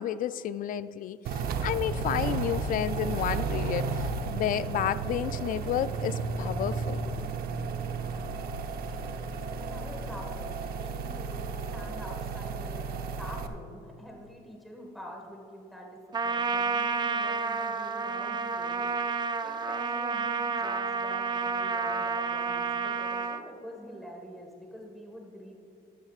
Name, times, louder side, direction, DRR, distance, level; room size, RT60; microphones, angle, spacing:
voice 1, 0.0-7.0, left 10 dB, 55° left, 15 dB, 0.4 m, -31 dB
sound 1, 1.2-13.5, right 4 dB, 65° right, 0.8 m, -33 dB
voice 2, 9.6-19.1 19.4-25.5, equal, ahead, 0 dB, 1.6 m, -46 dB
Trumpet, 16.1-23.4, right 5 dB, 25° right, 0.5 m, -30 dB
13.5 x 12.0 x 2.5 m, 2.6 s
cardioid pair, 110°, 17 cm